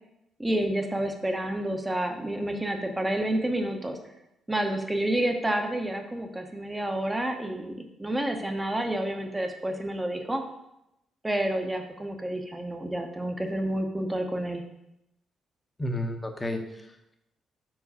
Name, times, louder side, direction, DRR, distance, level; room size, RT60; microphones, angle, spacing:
voice 1, 0.4-4.0 4.5-10.4 11.2-14.6, right 1 dB, 15° right, 5 dB, 0.9 m, -29 dB
voice 2, 15.8-17.1, left 1 dB, 20° left, 4 dB, 0.9 m, -32 dB
4.8 x 4.0 x 5.5 m, 0.86 s
cardioid pair, 80°, 0 cm